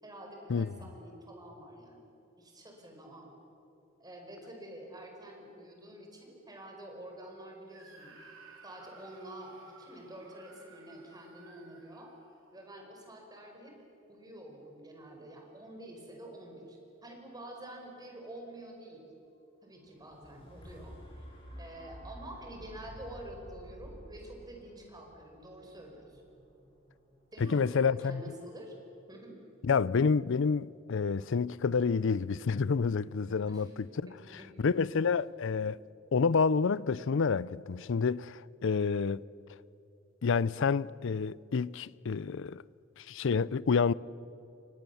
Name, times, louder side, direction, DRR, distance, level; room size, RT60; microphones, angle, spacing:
voice 1, 0.0-2.1 2.4-3.3 4.0-8.3 8.6-12.1 12.5-13.8 14.1-19.1 19.6-21.2 21.6-26.3 27.3-28.7 29.1-29.4 33.4-33.7 34.1-34.5 34.9-35.0, right 1 dB, 20° right, 5.1 m, -48 dB
Screaming, 7.7-12.6, right 3 dB, 70° right, 4.4 m, -56 dB
sound 1, 19.8-27.9 28.4-28.5, equal, 25° left, 7.1 m, -51 dB
voice 2, 27.4-28.2 29.6-33.7 34.0-34.1 34.6-35.8 36.1-39.2 40.2-42.6 43.0-43.9, left 5 dB, 65° left, 0.5 m, -28 dB
29.0 x 24.0 x 7.1 m
head